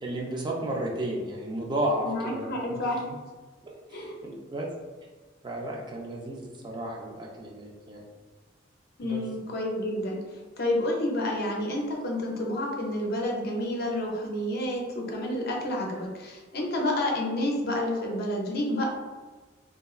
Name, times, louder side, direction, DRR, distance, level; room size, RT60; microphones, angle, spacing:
voice 1, 0.0-2.8 3.9-4.7 5.4-8.0 9.0-9.3, right 1 dB, 25° right, -2 dB, 0.4 m, -33 dB
voice 2, 2.0-3.0 3.9-4.2 9.0-10.2 10.6-18.9, left 1 dB, 55° left, -1 dB, 0.5 m, -29 dB
2.9 x 2.3 x 2.4 m, 1.3 s
head